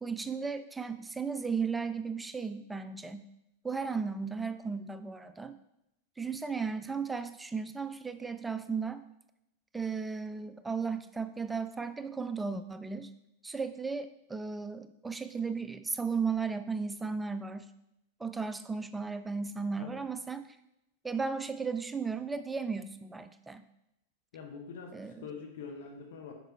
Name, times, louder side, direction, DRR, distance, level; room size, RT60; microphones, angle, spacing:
voice 1, 0.0-3.3 3.6-5.5 6.2-9.0 9.7-13.1 13.4-17.7 18.2-20.5 21.0-23.6 24.9-25.3, right 5 dB, 10° right, 11 dB, 0.3 m, -35 dB
voice 2, 19.8-20.1 24.3-26.3, left 5 dB, 55° left, 3 dB, 1.1 m, -45 dB
6.7 x 4.8 x 3.2 m, 0.86 s
figure-of-eight pair, 90°, 0 cm